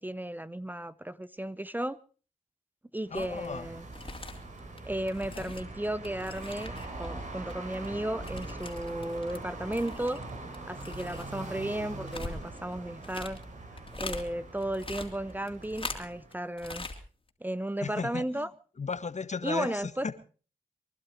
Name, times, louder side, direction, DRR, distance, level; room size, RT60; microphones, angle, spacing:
voice 1, 0.0-2.0 2.9-3.8 4.8-10.2 10.7-13.4 14.0-16.9 17.4-18.5 19.4-20.1, right 1 dB, 10° right, 0.7 m, -34 dB
voice 2, 3.1-3.7 5.3-5.5 17.8-18.5 18.8-20.1, left 5 dB, 50° left, 1.5 m, -35 dB
sound 1, 3.1-3.5 3.8-7.1 7.3-9.4 9.7-14.2 14.6-16.3 16.6-17.0 17.3-17.4, left 3 dB, 35° left, 3.3 m, -42 dB
sound 2, 3.1-16.4, right 2 dB, 55° right, 3.7 m, -43 dB
24.0 x 11.5 x 4.7 m
cardioid pair, 45°, 15 cm